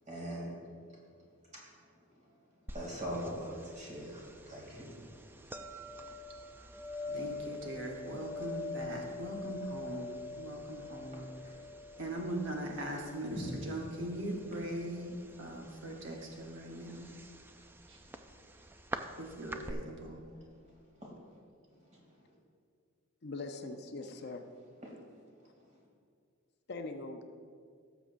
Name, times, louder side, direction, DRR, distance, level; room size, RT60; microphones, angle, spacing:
voice 1, 0.1-0.5 1.5-1.6 2.2-2.3 2.7-5.0 5.3-5.4 11.4-11.5 13.3-13.5 18.1-18.2 21.0-21.1 21.9-22.0 24.8-24.9, equal, 35° right, -4 dB, 2.7 m, -41 dB
sound 1, 2.7-19.7, left 1 dB, 10° right, 0.3 m, -45 dB
voice 2, 7.1-11.3 12.0-17.1 17.9-18.0 19.2-20.2, right 1 dB, 60° right, 0 dB, 1.1 m, -40 dB
voice 3, 23.2-24.4 26.7-27.2, left 3 dB, 50° left, 5 dB, 0.6 m, -41 dB
17.5 x 7.2 x 2.6 m, 2.2 s
head